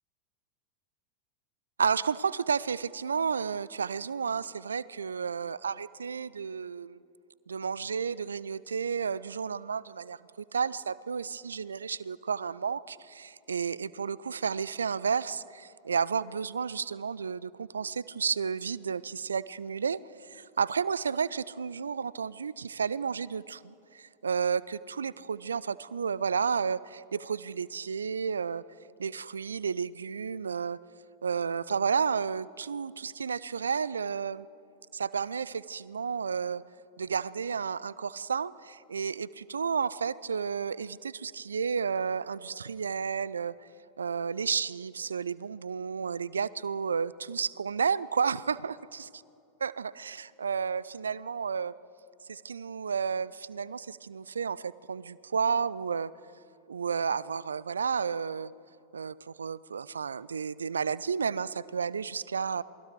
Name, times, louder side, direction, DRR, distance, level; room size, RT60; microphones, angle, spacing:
voice 1, 1.8-7.0 7.5-10.2 10.5-28.6 29.0-30.8 31.2-34.5 34.9-36.6 37.0-43.5 44.0-49.2 49.6-51.7 52.3-56.1 56.7-58.5 58.9-62.6, right 6 dB, 70° right, 20 dB, 0.5 m, -32 dB
28.0 x 20.5 x 4.8 m, 2.6 s
figure-of-eight pair, 90°, 0 cm